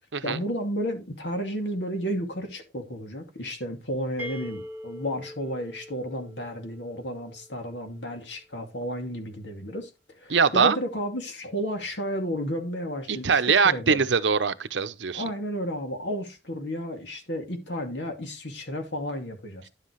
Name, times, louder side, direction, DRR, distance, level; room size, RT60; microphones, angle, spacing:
voice 1, 0.2-14.0 15.1-19.7, equal, 75° left, 2.4 m, -32 dB
sound 1, 4.2-7.9, left 1 dB, 10° right, 1.5 m, -43 dB
voice 2, 10.3-10.8 13.1-15.2, right 5 dB, 85° right, 0.8 m, -22 dB
11.0 x 7.6 x 3.1 m
head